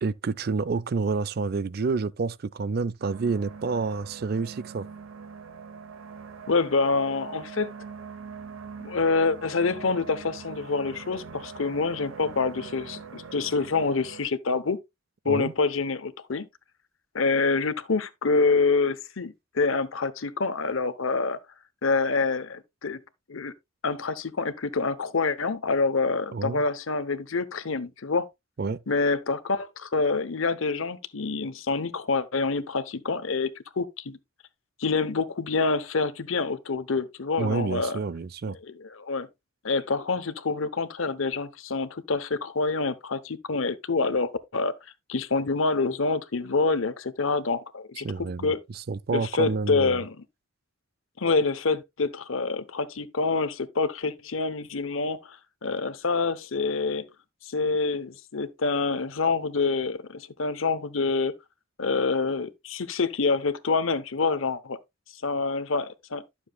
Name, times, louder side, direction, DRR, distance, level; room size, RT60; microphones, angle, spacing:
voice 1, 0.0-4.9 15.3-15.5 26.3-26.6 28.6-28.8 37.4-38.6 48.0-50.0, right 4 dB, 50° right, 0.4 m, -29 dB
sound 1, 3.0-14.3, right 5 dB, 85° right, 0.9 m, -43 dB
voice 2, 6.5-7.7 8.8-14.8 15.2-16.5 17.1-21.4 21.8-23.0 23.3-23.5 23.8-28.3 28.9-33.5 33.8-34.2 34.8-38.0 38.6-39.3 39.6-44.7 45.1-48.1 48.4-48.6 49.1-50.2 51.2-55.4 55.6-57.0 57.4-61.3 61.8-64.8 65.2-66.2, left 4 dB, 80° left, 0.9 m, -26 dB
11.5 x 7.2 x 2.3 m
head